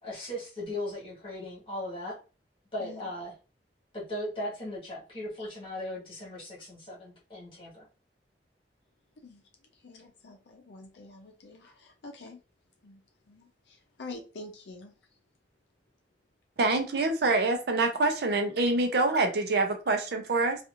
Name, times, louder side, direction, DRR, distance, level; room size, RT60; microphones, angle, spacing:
voice 1, 0.0-2.2 2.7-3.3 3.9-7.7, left 1 dB, 30° left, 1.5 m, -37 dB
voice 2, 9.8-12.4 12.8-13.0 13.3-14.9, left 3 dB, 70° left, 0.5 m, -46 dB
voice 3, 16.6-20.6, right 2 dB, 60° right, 0.6 m, -26 dB
2.8 x 2.4 x 2.5 m
head